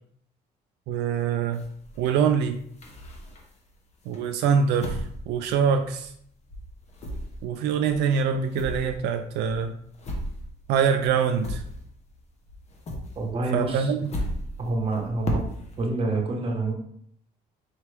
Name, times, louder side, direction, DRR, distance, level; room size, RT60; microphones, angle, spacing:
voice 1, 0.9-1.6 2.0-2.6 4.1-6.1 7.4-9.7 10.7-11.6 13.5-14.1, right 7 dB, 85° right, 6 dB, 0.4 m, -24 dB
sound 1, 1.5-3.7 4.1-6.2 6.5-12.2 12.5-15.9, left 1 dB, 40° left, 1.0 m, -36 dB
voice 2, 13.1-13.9 14.6-15.4 15.8-16.7, right 2 dB, 35° right, 1 dB, 1.1 m, -27 dB
4.6 x 3.0 x 3.3 m, 0.67 s
cardioid pair, 110°, 17 cm